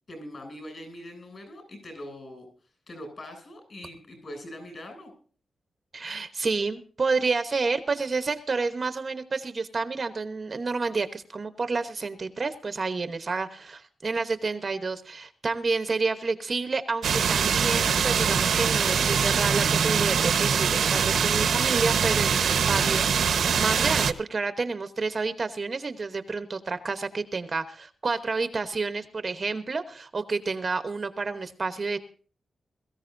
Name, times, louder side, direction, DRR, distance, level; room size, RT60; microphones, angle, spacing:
voice 1, 0.1-2.5 2.9-5.1 22.7-23.0, left 1 dB, 40° left, 5 dB, 7.2 m, -42 dB
voice 2, 5.9-23.0 23.3-32.0, right 4 dB, 30° right, 9 dB, 1.0 m, -29 dB
sound 1, 17.0-24.1, right 7 dB, 75° right, 1.1 m, -23 dB
22.0 x 14.5 x 2.6 m, 0.42 s
wide cardioid pair, 165°, 0 cm